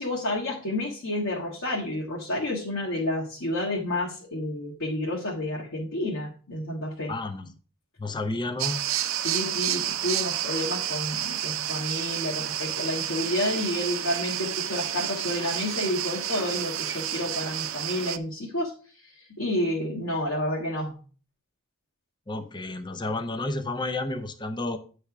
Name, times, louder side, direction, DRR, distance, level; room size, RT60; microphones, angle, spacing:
voice 1, 0.0-7.1 9.2-18.7 19.4-20.9, left 1 dB, 80° left, -4 dB, 1.5 m, -30 dB
voice 2, 7.1-7.4 8.0-8.8 22.3-24.8, left 2 dB, 20° left, 8 dB, 0.7 m, -31 dB
sound 1, 8.6-18.2, right 11 dB, 75° right, 0.5 m, -30 dB
9.2 x 3.4 x 5.8 m, 0.39 s
head